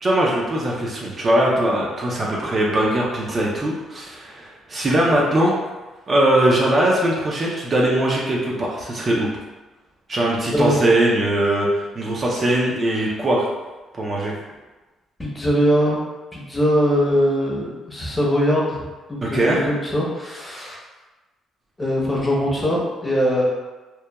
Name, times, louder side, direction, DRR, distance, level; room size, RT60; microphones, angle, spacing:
voice 1, 0.0-5.5 6.1-9.3 10.1-13.4 13.9-14.4 19.2-19.6, right 1 dB, 35° right, -3 dB, 0.4 m, -20 dB
voice 2, 15.2-16.0 16.3-18.8 19.1-20.8 21.8-23.4, equal, 15° left, -4 dB, 0.6 m, -21 dB
2.9 x 2.1 x 2.2 m, 1.2 s
cardioid pair, 115°, 0 cm